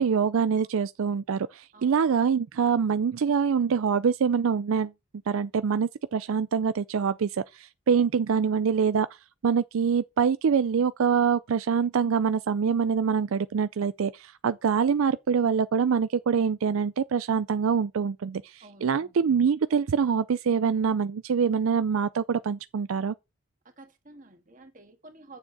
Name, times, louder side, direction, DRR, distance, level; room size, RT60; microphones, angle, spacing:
voice 1, 0.0-4.9 5.3-9.1 9.4-23.1, right 6 dB, 80° right, 0.4 m, -25 dB
voice 2, 18.6-19.2 23.8-25.4, right 2 dB, 40° right, 1.9 m, -50 dB
8.6 x 7.2 x 4.1 m
head